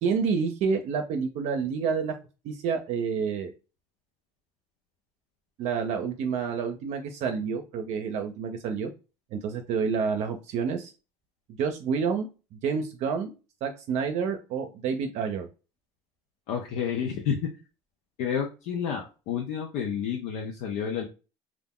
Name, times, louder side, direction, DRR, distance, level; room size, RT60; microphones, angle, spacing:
voice 1, 0.0-2.1 2.4-3.5 5.6-8.9 9.3-10.9 11.6-13.3 13.6-15.5, right 6 dB, 60° right, 5 dB, 0.5 m, -29 dB
voice 2, 16.5-17.4 18.2-21.0, left 7 dB, 75° left, 1 dB, 0.6 m, -30 dB
2.4 x 2.0 x 3.6 m, 0.31 s
supercardioid pair, 95°, 13 cm